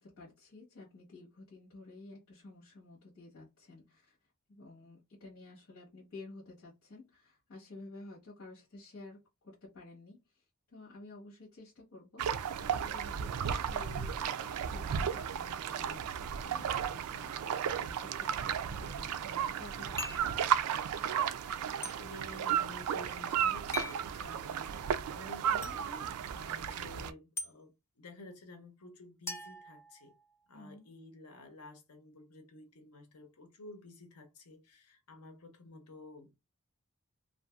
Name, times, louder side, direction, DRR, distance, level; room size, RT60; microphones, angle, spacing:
voice 1, 0.0-4.2 4.5-20.4 30.5-30.9, left 2 dB, 65° left, 1.3 m, -52 dB
sound 1, 12.2-27.1, right 8 dB, 85° right, 0.3 m, -34 dB
sound 2, 20.0-20.4 21.8-22.0 23.7-24.0 25.6-25.7 27.4-27.5 29.3-30.3, left 3 dB, 10° left, 0.3 m, -40 dB
voice 2, 21.8-30.1 30.5-36.3, left 2 dB, 80° left, 0.8 m, -52 dB
2.6 x 2.5 x 2.3 m
head